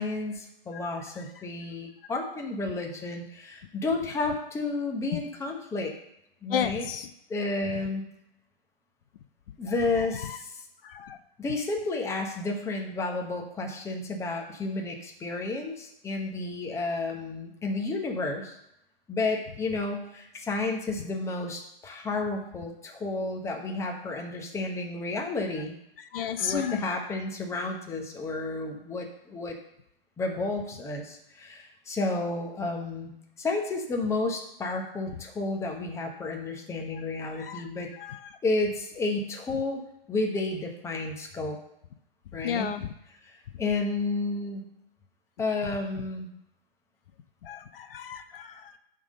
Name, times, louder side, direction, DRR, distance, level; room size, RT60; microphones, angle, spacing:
voice 1, 0.0-5.9 6.4-6.9 7.3-8.0 9.6-10.6 11.4-18.6 19.1-25.7 26.4-29.5 30.2-37.9 38.4-39.8 40.1-41.6 42.3-42.8 43.6-44.6 45.4-46.3, left 3 dB, 10° left, 2 dB, 0.9 m, -31 dB
voice 2, 6.5-7.1 10.2-10.4 10.8-11.2 26.1-26.9 37.4-37.6 38.0-38.2 42.4-42.9 47.4-48.7, left 9 dB, 65° left, 10 dB, 0.7 m, -32 dB
8.8 x 3.7 x 6.5 m, 0.80 s
hypercardioid pair, 140°, 30 cm